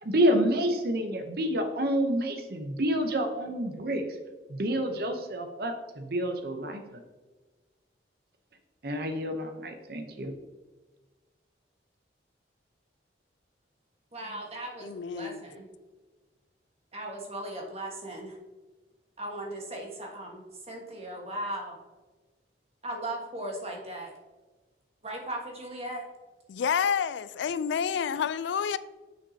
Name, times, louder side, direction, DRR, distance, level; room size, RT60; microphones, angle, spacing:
voice 1, 0.0-4.0 4.5-7.0 8.8-10.3, equal, 55° right, 0.7 m, -28 dB
voice 2, 14.1-14.9 15.1-15.7 16.9-18.4 19.2-21.8 22.8-24.1 25.0-26.0, right 1 dB, 35° right, 1.3 m, -37 dB
voice 3, 14.8-15.5 26.5-28.8, left 7 dB, 75° left, 0.3 m, -29 dB
7.2 x 6.0 x 2.7 m
head